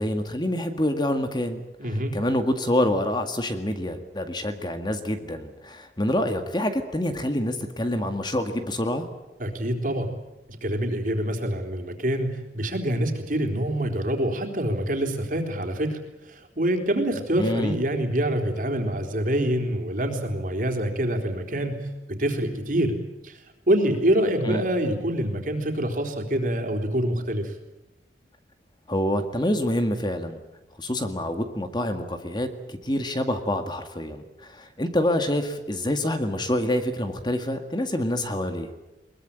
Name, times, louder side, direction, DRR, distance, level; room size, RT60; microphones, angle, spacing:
voice 1, 0.0-1.6 2.1-9.1 17.4-17.8 24.4-24.6 28.9-30.4 30.8-38.7, left 1 dB, 25° left, 7 dB, 1.9 m, -26 dB
voice 2, 1.8-2.2 9.4-10.1 10.6-16.0 16.2-21.8 22.2-23.0 23.2-23.4 23.7-27.5, right 1 dB, 50° right, 3 dB, 3.9 m, -25 dB
22.0 x 21.5 x 9.0 m, 1.0 s
head